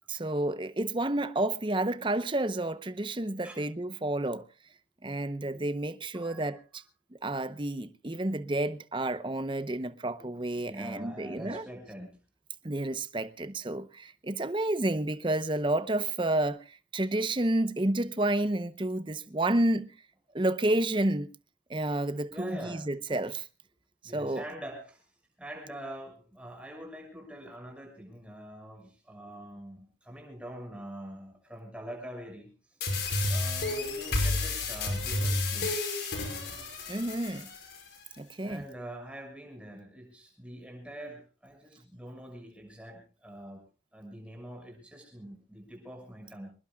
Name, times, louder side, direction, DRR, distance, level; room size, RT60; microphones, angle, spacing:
voice 1, 0.1-4.4 5.0-6.8 7.2-11.6 12.6-19.9 20.3-21.3 21.7-23.5 24.1-24.4 36.9-37.5 38.2-38.6, right 1 dB, 25° right, 0.8 m, -30 dB
voice 2, 6.1-6.6 10.2-10.3 10.6-12.2 22.3-22.9 24.0-25.0 25.4-32.5 33.3-35.9 38.4-43.6 43.9-46.5, right 1 dB, 5° right, 6.4 m, -44 dB
sound 1, 32.8-37.8, left 2 dB, 65° left, 5.7 m, -31 dB
26.0 x 20.5 x 2.3 m
head